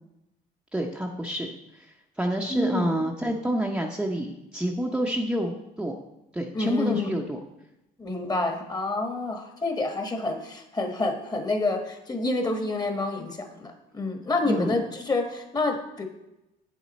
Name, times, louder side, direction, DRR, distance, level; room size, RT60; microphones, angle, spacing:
voice 1, 0.7-1.9 2.2-6.0 6.3-7.4 14.4-14.8, equal, 5° right, 0 dB, 0.7 m, -28 dB
voice 2, 2.5-2.9 6.5-7.2 8.0-16.0, left 2 dB, 25° left, 5 dB, 1.2 m, -28 dB
7.8 x 7.3 x 4.1 m, 0.91 s
cardioid pair, 110°, 17 cm